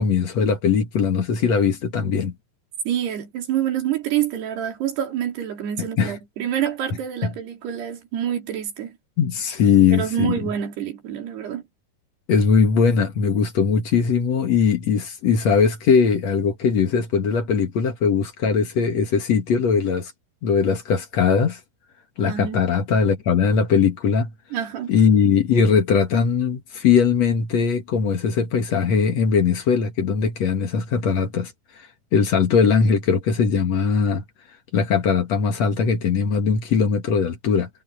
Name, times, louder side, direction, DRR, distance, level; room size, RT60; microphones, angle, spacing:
voice 1, 0.0-2.3 5.8-6.2 7.2-7.3 9.2-10.4 12.3-20.1 20.4-21.6 22.2-24.3 24.9-31.5 32.1-34.2 34.7-37.7, left 6 dB, 55° left, 2.2 m, -20 dB
voice 2, 2.9-9.0 9.9-11.6 22.3-22.6 24.5-24.9, right 10 dB, 70° right, 5.2 m, -27 dB
omnidirectional pair, 5.0 m